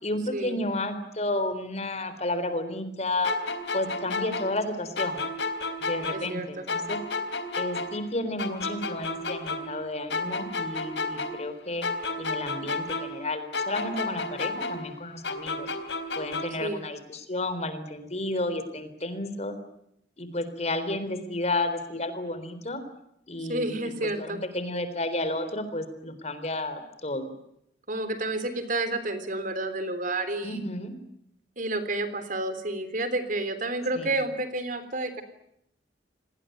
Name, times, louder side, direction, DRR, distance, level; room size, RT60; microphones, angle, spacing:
voice 1, 0.0-3.3 3.7-5.2 5.8-7.0 7.6-11.9 12.2-15.7 16.2-19.6 20.2-22.8 23.3-23.7 24.0-27.3 30.4-30.9 33.9-34.1, left 2 dB, 40° left, 11 dB, 3.8 m, -32 dB
sound 1, 3.2-6.4 6.7-9.8 10.1-13.3 13.5-16.7, left 3 dB, 85° left, 3.9 m, -32 dB
voice 2, 6.1-6.7 16.6-16.8 23.5-24.4 27.9-30.6 31.6-35.2, right 2 dB, 50° right, 11 dB, 3.4 m, -30 dB
28.0 x 20.0 x 9.3 m, 0.77 s
head